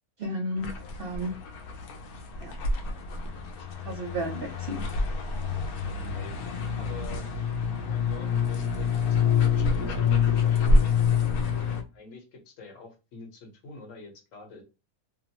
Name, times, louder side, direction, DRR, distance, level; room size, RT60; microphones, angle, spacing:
voice 1, 0.2-1.4 2.4-2.5 3.8-4.9, right 1 dB, 65° right, 0.6 m, -33 dB
sound 1, 0.6-11.8, left 5 dB, 85° left, 1.1 m, -27 dB
voice 2, 5.8-6.3 6.7-7.3 7.8-11.0 11.9-14.6, left 4 dB, 65° left, 1.2 m, -46 dB
2.9 x 2.0 x 2.7 m
omnidirectional pair, 1.5 m